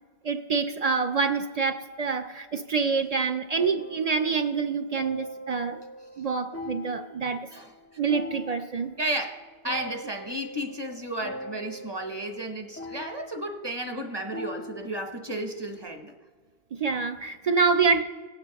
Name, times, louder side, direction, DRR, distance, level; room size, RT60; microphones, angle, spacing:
voice 1, 0.2-5.8 6.2-7.5 8.0-8.9 16.8-18.0, right 5 dB, 55° right, 8 dB, 0.4 m, -26 dB
sound 1, 3.6-15.9, left 1 dB, 20° left, 0.4 m, -42 dB
voice 2, 9.0-16.1, right 1 dB, 25° right, 5 dB, 0.8 m, -33 dB
18.5 x 8.9 x 2.9 m, 1.4 s
omnidirectional pair, 1.1 m